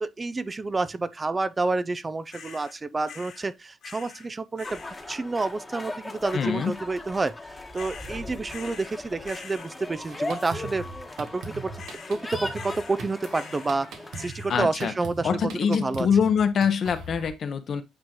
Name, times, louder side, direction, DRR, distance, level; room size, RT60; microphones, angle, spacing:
voice 1, 0.0-4.8 5.1-7.3 7.7-10.9 11.2-11.7 12.1-13.9 14.2-16.1, right 3 dB, 20° right, 0.4 m, -29 dB
sound 1, 2.3-2.7 3.1-3.5 3.8-4.3 4.6-5.0 7.7-9.0 9.2-9.7 11.8-12.2 12.5-13.0 13.3-13.8 14.1-14.6 16.7-17.1, left 7 dB, 65° left, 1.8 m, -45 dB
sound 2, 4.6-14.3, left 2 dB, 15° left, 1.1 m, -39 dB
voice 2, 6.3-6.7 14.5-14.9 15.2-17.8, left 7 dB, 50° left, 0.8 m, -24 dB
Drum kit, 10.1-17.3, right 3 dB, 80° right, 1.4 m, -41 dB
8.8 x 3.7 x 2.9 m
cardioid pair, 145°, 0 cm